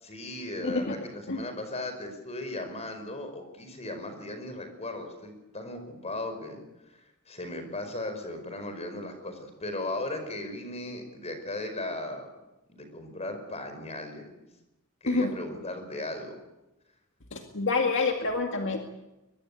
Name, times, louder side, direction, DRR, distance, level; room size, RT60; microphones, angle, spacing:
voice 1, 0.0-6.6 6.9-12.4 12.7-14.4 15.0-16.4, left 2 dB, 30° left, 7 dB, 5.2 m, -37 dB
voice 2, 0.6-1.0 1.3-1.4 15.1-15.3 17.3-19.0, left 3 dB, 60° left, 3 dB, 2.2 m, -28 dB
23.0 x 22.5 x 8.5 m, 0.97 s
head